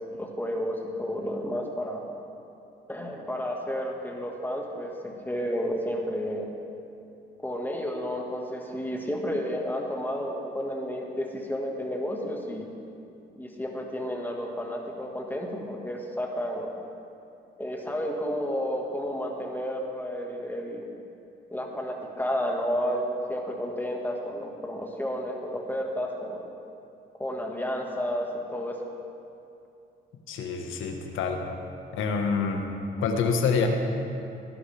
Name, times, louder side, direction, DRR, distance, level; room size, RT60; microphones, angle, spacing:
voice 1, 0.1-2.0 2.9-6.5 7.4-12.7 13.3-16.7 17.6-20.8 21.5-26.5 27.2-28.8, equal, 10° left, 0 dB, 1.7 m, -31 dB
voice 2, 30.3-31.4 31.9-32.7 33.0-33.7, left 5 dB, 85° left, 3 dB, 1.5 m, -26 dB
18.0 x 11.0 x 3.5 m, 2.6 s
cardioid pair, 90°, 20 cm